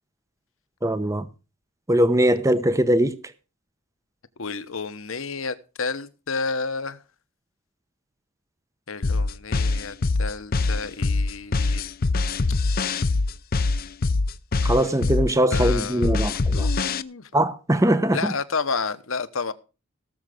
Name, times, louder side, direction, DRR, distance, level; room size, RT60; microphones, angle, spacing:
voice 1, 0.8-1.3 1.9-3.2 14.6-16.7 17.3-18.2, right 1 dB, 15° right, 0.8 m, -21 dB
voice 2, 4.4-7.0 8.9-11.8 15.5-16.3 16.5-17.3 18.1-19.5, left 4 dB, 70° left, 1.1 m, -31 dB
sound 1, 9.0-17.0, left 3 dB, 45° left, 0.6 m, -23 dB
18.0 x 7.3 x 5.1 m
head